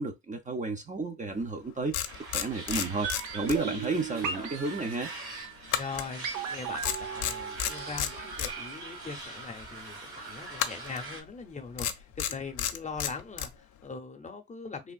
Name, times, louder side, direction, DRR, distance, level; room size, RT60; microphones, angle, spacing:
voice 1, 0.0-5.1, right 3 dB, 25° right, 0.5 m, -32 dB
sound 1, 1.4-1.5 1.9-4.0 4.2-4.4 5.7-6.5 6.8-8.5 10.5-11.1 11.8-13.5, left 10 dB, 80° left, 0.5 m, -32 dB
sound 2, 2.0-11.2, right 3 dB, 45° right, 1.2 m, -43 dB
sound 3, 3.0-9.1 9.3-9.4, right 7 dB, 85° right, 0.7 m, -37 dB
voice 2, 5.7-14.9, left 4 dB, 25° left, 0.6 m, -41 dB
3.4 x 2.4 x 2.3 m
cardioid pair, 90°, 30 cm